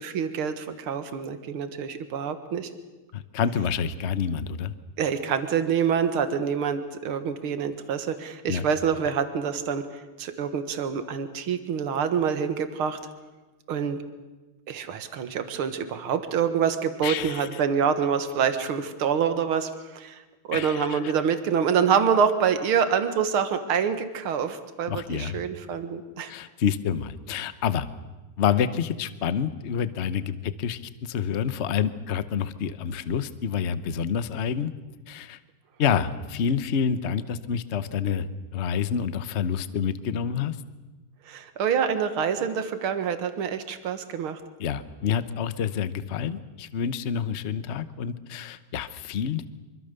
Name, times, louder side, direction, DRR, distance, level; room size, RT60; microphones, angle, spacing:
voice 1, 0.0-2.7 5.0-9.8 10.2-13.0 13.7-14.0 14.7-20.2 20.5-26.3 41.3-44.4, right 7 dB, 80° right, 10 dB, 2.3 m, -26 dB
voice 2, 3.1-4.7 8.5-8.7 17.0-17.5 20.5-21.1 24.9-25.4 26.3-27.9 28.4-34.7 35.1-35.4 35.8-38.3 38.5-40.5 44.6-49.5, left 7 dB, 45° left, 14 dB, 0.9 m, -28 dB
25.0 x 23.5 x 6.8 m, 1.2 s
omnidirectional pair, 2.3 m